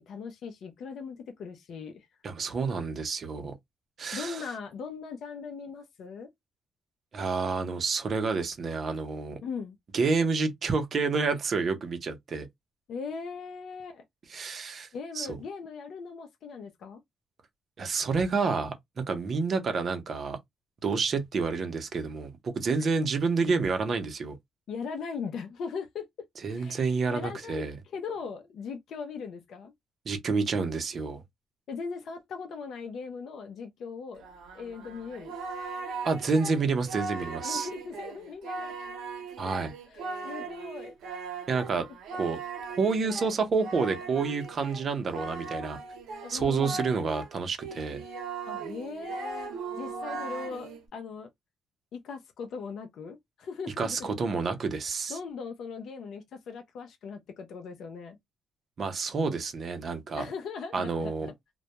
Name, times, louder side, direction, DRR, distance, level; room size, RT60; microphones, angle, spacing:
voice 1, 0.0-2.1 4.1-6.3 9.4-9.8 12.9-14.0 14.9-17.0 22.8-22.9 24.7-26.1 26.5-29.7 31.7-34.2 34.5-35.3 37.4-38.7 39.9-40.9 46.2-46.8 48.5-51.3 51.9-54.1 55.1-58.2 60.2-61.3, left 5 dB, 65° left, 0.5 m, -39 dB
voice 2, 2.2-3.5 4.0-4.4 7.1-9.4 9.9-12.5 14.3-14.9 15.2-15.4 17.8-20.4 20.8-24.4 26.4-27.7 30.1-31.2 36.0-37.7 39.4-39.7 41.5-41.8 42.2-42.4 42.7-45.8 46.3-48.0 53.8-55.2 58.8-60.2 60.7-61.3, right 4 dB, 50° right, 0.7 m, -29 dB
Singing, 34.2-47.3 47.6-50.8, right 4 dB, 85° right, 0.7 m, -39 dB
2.2 x 2.1 x 2.8 m
cardioid pair, 90°, 0 cm